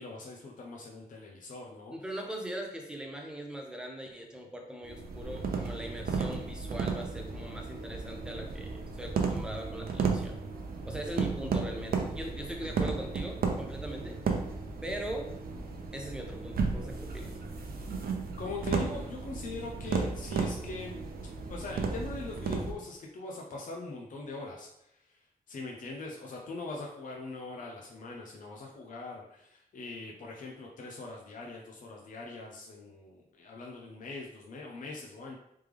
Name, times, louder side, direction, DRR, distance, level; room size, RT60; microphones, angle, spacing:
voice 1, 0.0-1.9 18.4-21.0 21.5-25.2 25.5-35.4, left 3 dB, 60° left, -1 dB, 0.6 m, -42 dB
voice 2, 1.9-10.4 10.8-14.2 14.8-15.3 15.9-17.4, right 1 dB, 5° right, 1 dB, 0.6 m, -40 dB
sound 1, 4.8-22.7, right 4 dB, 80° right, 0.6 m, -34 dB
3.4 x 3.3 x 3.3 m, 0.78 s
wide cardioid pair, 140°, 15 cm